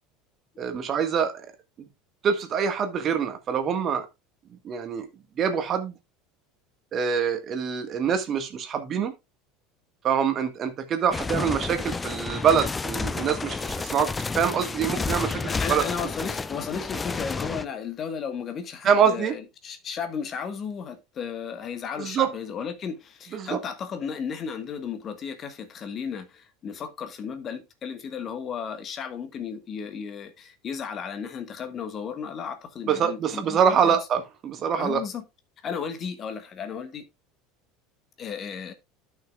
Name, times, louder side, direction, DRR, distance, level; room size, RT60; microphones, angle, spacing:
voice 1, 0.6-1.5 1.8-1.9 2.2-4.1 4.6-5.1 5.4-5.9 6.9-9.1 10.0-15.4 15.7-16.1 18.8-19.4 22.0-22.3 23.3-23.6 32.9-35.0, right 7 dB, 40° right, 1.6 m, -25 dB
sound 1, 11.1-17.6, left 4 dB, 20° left, 0.5 m, -31 dB
voice 2, 15.5-34.0 34.8-35.2 35.6-37.1 38.2-38.7, left 6 dB, 40° left, 1.4 m, -34 dB
14.0 x 5.9 x 2.4 m
figure-of-eight pair, 70°, 0 cm